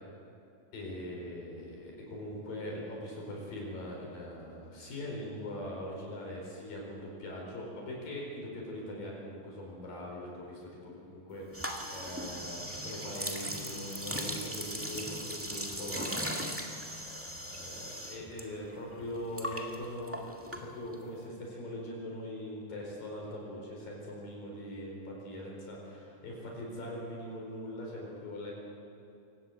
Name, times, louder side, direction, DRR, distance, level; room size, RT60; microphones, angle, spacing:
voice 1, 0.7-16.8 17.0-20.2 20.6-28.5, left 1 dB, 75° left, -1 dB, 6.1 m, -41 dB
sound 1, 11.5-18.4 18.7-21.1, equal, 15° right, 0.4 m, -38 dB
25.0 x 19.0 x 7.8 m, 2.7 s
omnidirectional pair, 4.1 m